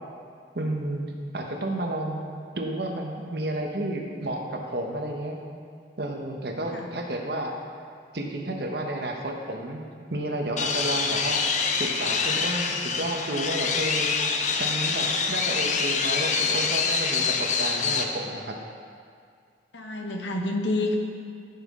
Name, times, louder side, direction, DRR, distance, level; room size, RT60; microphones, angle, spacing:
voice 1, 0.5-2.2 2.5-5.4 6.0-7.5 8.1-9.8 10.1-11.4 11.8-14.1 14.6-18.6, right 1 dB, 60° right, 1 dB, 1.0 m, -31 dB
sound 1, 10.6-18.0, left 5 dB, 40° left, 0.6 m, -26 dB
voice 2, 19.7-21.0, left 2 dB, 85° left, 2 dB, 1.1 m, -28 dB
13.0 x 5.7 x 3.7 m, 2.2 s
head